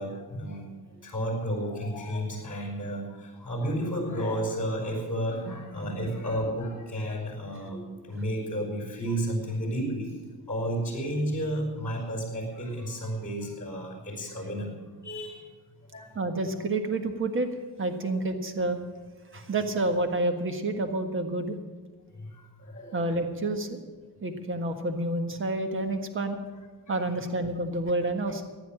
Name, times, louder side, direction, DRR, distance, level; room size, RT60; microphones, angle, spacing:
voice 1, 0.0-10.2 10.5-14.7 15.0-15.5 15.9-16.2 18.1-18.2 22.1-23.0 26.9-27.1, equal, 20° left, -4 dB, 4.9 m, -32 dB
voice 2, 16.1-17.5 17.8-18.8 19.3-21.6 22.9-23.8 24.2-26.4 26.9-28.4, right 2 dB, 30° right, 7 dB, 1.5 m, -29 dB
15.0 x 10.5 x 7.5 m, 1.4 s
cardioid pair, 150°, 39 cm